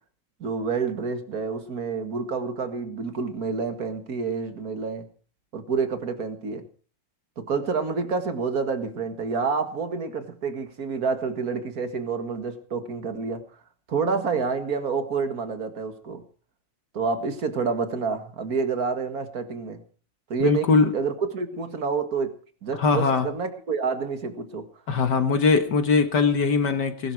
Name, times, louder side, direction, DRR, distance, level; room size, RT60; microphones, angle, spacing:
voice 1, 0.4-5.1 5.5-6.6 7.4-13.5 13.9-16.2 16.9-19.8 20.3-22.3 22.6-24.7, right 5 dB, 45° right, 2.1 m, -28 dB
voice 2, 20.4-20.9 22.7-23.3 24.9-27.1, left 4 dB, 55° left, 1.9 m, -21 dB
20.5 x 12.0 x 4.7 m
omnidirectional pair, 2.4 m